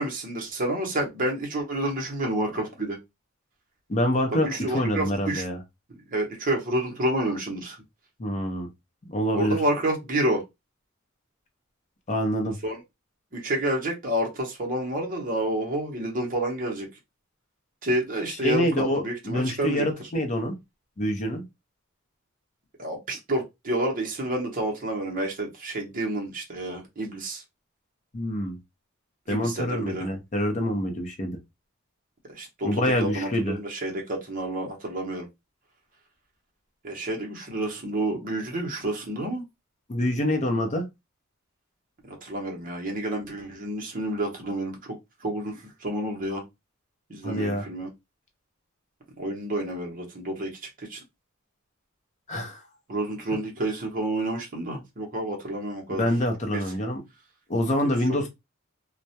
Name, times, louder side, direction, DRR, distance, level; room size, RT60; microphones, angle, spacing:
voice 1, 0.0-3.0 4.3-5.4 5.9-7.8 9.3-10.4 12.6-12.8 13.3-16.9 17.8-19.9 22.8-27.4 29.3-30.1 32.3-35.3 36.8-39.4 42.1-45.0 45.2-46.4 47.1-47.9 49.2-50.5 50.9-51.0 52.9-56.1 56.5-56.6 58.1-58.3, right 1 dB, 40° right, 0.7 m, -29 dB
voice 2, 3.9-5.6 8.2-8.7 9.1-9.6 12.1-12.5 18.4-20.5 21.0-21.4 28.1-28.6 29.3-31.4 32.6-33.6 39.9-40.8 47.2-47.7 52.3-52.6 56.0-57.0 57.5-58.3, equal, 35° left, 0.6 m, -26 dB
2.2 x 2.0 x 2.7 m
head